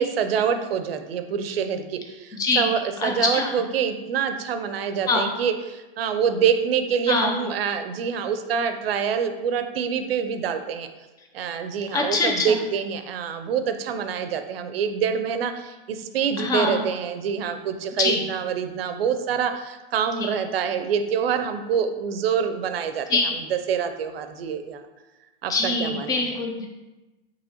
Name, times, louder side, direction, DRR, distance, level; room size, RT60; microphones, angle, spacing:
voice 1, 0.0-10.9 11.3-23.1 23.5-24.8 25.4-25.5 25.8-26.2, right 7 dB, 85° right, 8 dB, 0.5 m, -26 dB
voice 2, 2.3-2.7 3.0-3.5 5.1-5.2 7.1-7.5 11.9-12.6 16.4-16.9 18.0-18.2 20.2-20.3 23.1-23.3 25.5-26.7, left 3 dB, 15° left, 2 dB, 0.4 m, -24 dB
5.5 x 2.9 x 2.8 m, 1.1 s
hypercardioid pair, 140°, 29 cm